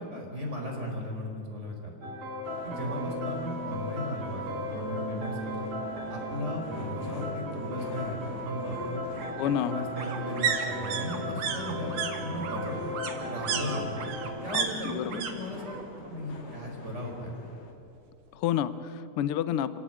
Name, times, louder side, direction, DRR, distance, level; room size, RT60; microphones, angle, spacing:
voice 1, 0.0-2.1 2.6-5.7 6.1-9.0 9.4-12.8 13.3-13.8 14.4-15.8 16.1-17.3, equal, 20° right, 0 dB, 4.5 m, -36 dB
sound 1, 2.0-14.3, equal, 60° right, 6.2 m, -36 dB
sound 2, 2.4-17.7, left 3 dB, 45° left, 2.5 m, -44 dB
sound 3, 4.4-4.5 4.9-5.0 5.2-6.2 7.5-15.3 15.6-16.2 16.4-17.5 17.8-17.9, right 7 dB, 85° right, 3.4 m, -35 dB
voice 2, 9.4-9.8 14.5-15.2 18.3-19.8, left 10 dB, 75° left, 13 dB, 1.3 m, -30 dB
26.5 x 17.5 x 9.1 m, 2.9 s
omnidirectional pair, 3.7 m